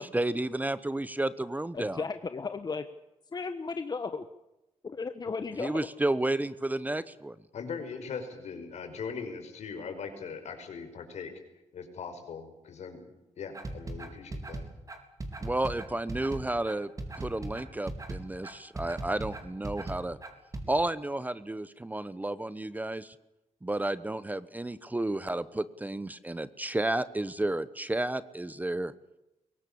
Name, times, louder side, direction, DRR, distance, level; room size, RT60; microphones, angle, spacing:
voice 1, 0.0-2.0 5.6-7.4 15.4-16.9 17.2-20.2 20.7-23.1 23.6-28.9, right 1 dB, 15° right, 16 dB, 1.0 m, -32 dB
voice 2, 1.7-2.8 3.3-4.2 4.8-5.9, left 4 dB, 35° left, 9 dB, 1.3 m, -35 dB
voice 3, 7.5-11.3 11.7-14.6, left 5 dB, 70° left, 6 dB, 5.2 m, -40 dB
sound 1, 13.5-20.6, right 2 dB, 30° right, 3.8 m, -38 dB
23.0 x 18.0 x 8.6 m, 0.93 s
cardioid pair, 95°, 12 cm